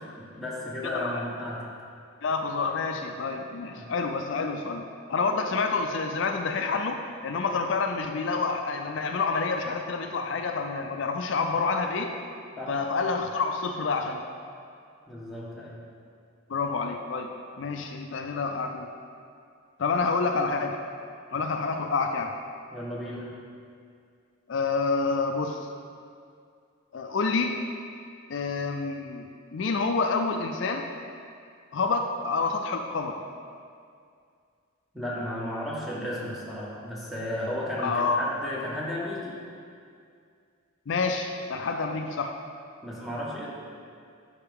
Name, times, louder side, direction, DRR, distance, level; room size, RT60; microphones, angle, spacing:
voice 1, 0.0-1.7 3.7-3.9 12.6-12.8 15.1-15.8 22.7-23.3 34.9-39.4 42.8-43.5, left 1 dB, ahead, -6 dB, 1.2 m, -34 dB
voice 2, 0.8-1.2 2.2-12.1 12.7-14.2 16.5-17.3 17.6-18.9 19.8-20.8 21.3-22.3 24.5-25.6 26.9-27.6 28.3-30.8 31.7-33.2 37.8-38.2 40.9-42.3, left 4 dB, 65° left, 4 dB, 0.4 m, -28 dB
11.5 x 4.5 x 3.6 m, 2.3 s
head